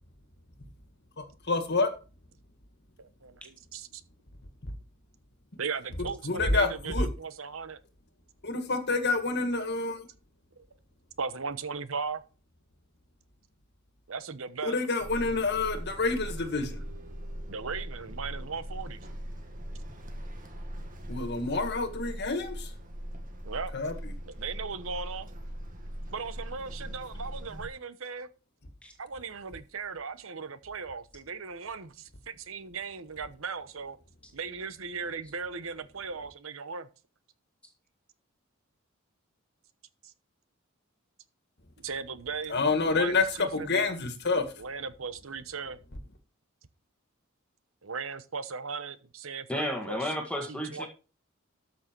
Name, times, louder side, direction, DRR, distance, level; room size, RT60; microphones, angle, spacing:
voice 1, 1.2-1.9 6.2-7.1 8.4-10.0 14.6-16.8 21.1-22.7 23.7-23.9 42.5-43.3 43.5-44.4, left 3 dB, 55° left, 1.9 m, -28 dB
voice 2, 3.0-3.9 5.6-7.8 10.6-10.7 11.2-12.2 14.1-14.7 17.5-19.0 21.8-22.2 23.4-23.7 24.3-25.3 26.1-28.3 29.0-34.0 34.3-36.9 40.0-40.1 41.8-42.6 42.9-43.9 44.6-45.8 47.8-50.1 50.5-50.9, right 5 dB, 70° right, 1.0 m, -37 dB
sound 1, 15.0-27.7, equal, 40° right, 2.1 m, -40 dB
voice 3, 49.5-50.9, equal, 5° left, 1.8 m, -32 dB
13.0 x 6.4 x 4.6 m
head